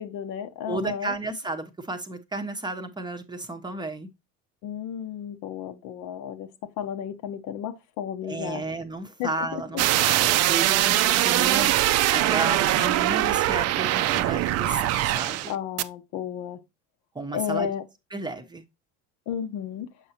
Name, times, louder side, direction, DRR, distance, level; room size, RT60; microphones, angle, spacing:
voice 1, 0.0-1.1 4.6-6.5 6.8-8.6 9.2-9.6 15.5-16.6 17.3-17.8 19.3-19.9, left 9 dB, 65° left, 0.9 m, -32 dB
voice 2, 0.6-4.1 8.2-11.7 12.1-15.5 17.1-17.7 18.1-18.6, right 2 dB, 15° right, 0.7 m, -32 dB
sound 1, 9.8-15.5 15.8-15.9, right 14 dB, 50° right, 0.5 m, -22 dB
6.6 x 5.4 x 2.8 m
supercardioid pair, 100°, 34 cm